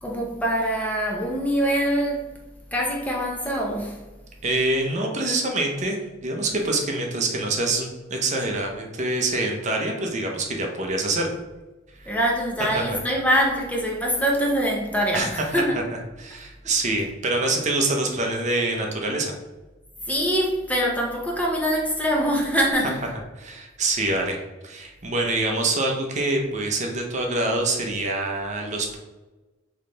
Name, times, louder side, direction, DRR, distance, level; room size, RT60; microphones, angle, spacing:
voice 1, 0.0-2.3 2.7-4.0 12.1-15.8 20.1-23.0, equal, 10° left, -1 dB, 0.6 m, -24 dB
voice 2, 4.4-11.4 12.7-13.0 15.1-15.6 16.2-19.3 23.4-24.4 24.6-29.0, right 2 dB, 40° right, 2 dB, 0.7 m, -25 dB
3.7 x 3.3 x 3.8 m, 1.1 s
head